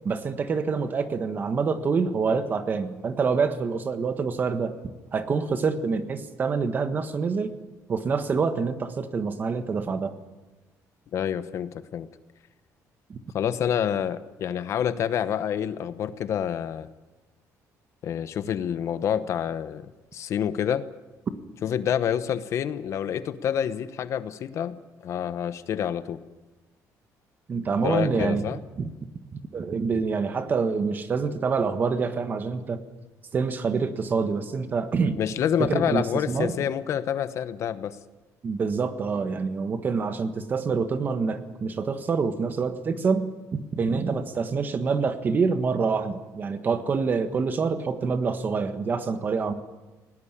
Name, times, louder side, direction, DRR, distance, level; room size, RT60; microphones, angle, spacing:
voice 1, 0.0-4.7 5.1-7.5 7.9-10.2 13.1-13.2 27.5-28.4 28.8-28.9 29.3-32.8 33.3-35.2 35.6-36.5 38.4-49.5, right 5 dB, 30° right, 9 dB, 1.5 m, -26 dB
voice 2, 11.1-12.1 13.3-16.9 18.0-20.8 21.6-24.7 25.0-26.2 27.8-28.6 35.2-38.0, left 9 dB, 50° left, 13 dB, 1.0 m, -28 dB
20.0 x 18.5 x 9.9 m, 1.1 s
cardioid pair, 165°, 6 cm